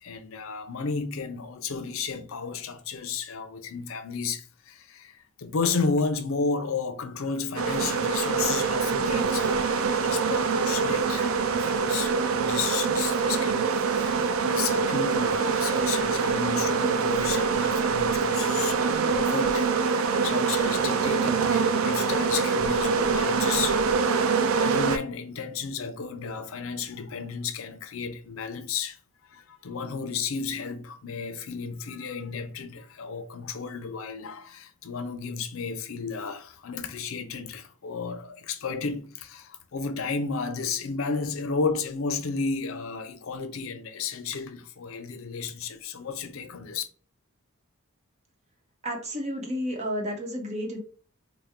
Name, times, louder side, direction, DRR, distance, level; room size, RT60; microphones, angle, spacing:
voice 1, 0.0-23.8 24.6-29.0 29.3-46.8, left 5 dB, 70° left, 0.5 m, -33 dB
sound 1, 7.6-25.0, right 5 dB, 75° right, 0.4 m, -25 dB
voice 2, 48.8-50.8, equal, 30° right, 0.9 m, -31 dB
4.2 x 2.1 x 3.5 m
head